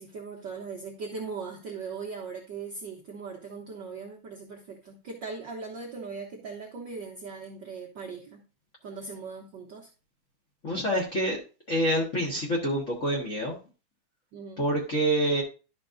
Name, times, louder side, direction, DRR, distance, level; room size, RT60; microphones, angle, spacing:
voice 1, 0.0-8.4 8.8-9.9 14.3-14.7, right 4 dB, 90° right, 0 dB, 0.9 m, -39 dB
voice 2, 10.6-11.4 11.7-13.6 14.6-15.4, right 1 dB, 40° left, -3 dB, 1.1 m, -27 dB
11.5 x 5.9 x 2.6 m, 0.33 s
omnidirectional pair, 3.5 m